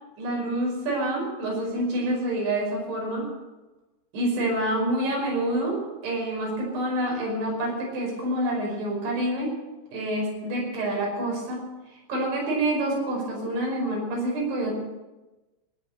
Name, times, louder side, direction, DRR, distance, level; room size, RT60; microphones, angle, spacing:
voice 1, 0.2-3.3 4.1-9.6 9.9-11.6 12.1-14.8, right 1 dB, 90° right, -2 dB, 7.7 m, -27 dB
20.0 x 9.7 x 6.7 m, 1.1 s
omnidirectional pair, 5.1 m